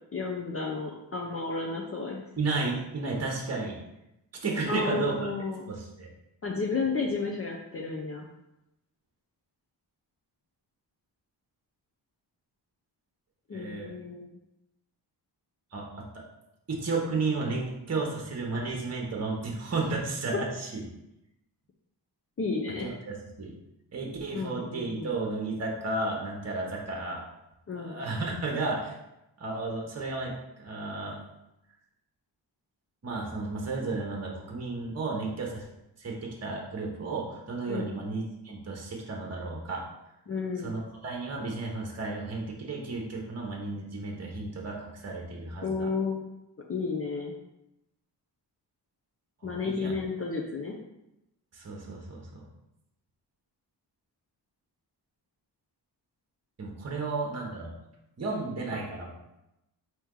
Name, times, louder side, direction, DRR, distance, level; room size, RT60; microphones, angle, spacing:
voice 1, 0.1-2.2 4.7-5.7 6.4-8.3 13.5-14.3 22.4-22.9 24.3-25.1 27.7-28.0 37.7-38.0 40.3-40.7 45.6-46.2 46.7-47.4 49.4-50.7, left 4 dB, 35° left, 0 dB, 0.6 m, -32 dB
voice 2, 2.4-3.8 4.4-5.3 5.7-6.1 13.5-13.9 15.7-16.2 16.7-20.8 22.8-23.5 23.9-27.2 27.7-28.9 29.4-31.2 33.0-35.7 36.0-39.8 40.6-44.8 45.0-45.9 49.4-49.9 51.5-52.4 56.6-57.7 58.2-59.2, right 3 dB, 35° right, -1 dB, 1.0 m, -33 dB
4.3 x 2.9 x 3.7 m, 0.89 s
cardioid pair, 75°, 42 cm